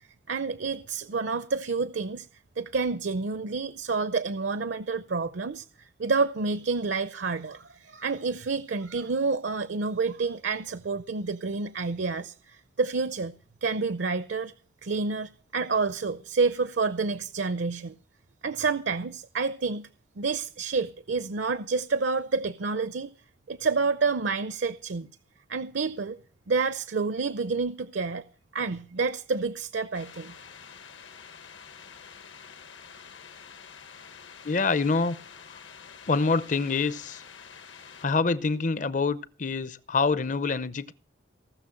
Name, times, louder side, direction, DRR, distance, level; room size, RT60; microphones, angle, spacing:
voice 1, 0.3-2.3 2.6-13.3 13.6-14.5 14.8-17.9 18.4-19.9 20.2-23.1 23.5-25.1 25.5-26.2 26.5-28.2 28.5-30.3, right 4 dB, 65° right, 0.6 m, -29 dB
sound 1, 29.9-38.1, left 6 dB, 70° left, 1.2 m, -48 dB
voice 2, 34.4-35.2 36.1-37.2 38.0-40.9, left 4 dB, 40° left, 0.6 m, -26 dB
18.0 x 6.6 x 7.6 m
head